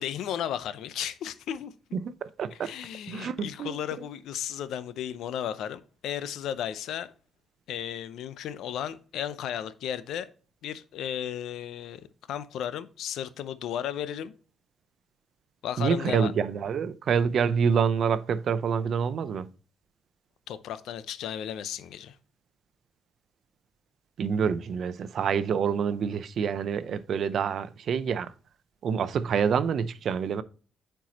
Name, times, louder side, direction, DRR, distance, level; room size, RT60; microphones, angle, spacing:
voice 1, 0.0-2.0 2.5-7.1 7.7-10.3 10.6-12.0 12.3-14.3 15.6-16.3 20.5-22.2, left 10 dB, 80° left, 0.6 m, -34 dB
voice 2, 1.9-2.7 3.1-3.8 15.8-19.5 24.2-28.3 28.8-30.4, right 6 dB, 60° right, 0.6 m, -27 dB
9.1 x 4.6 x 2.9 m
cardioid pair, 90°, 0 cm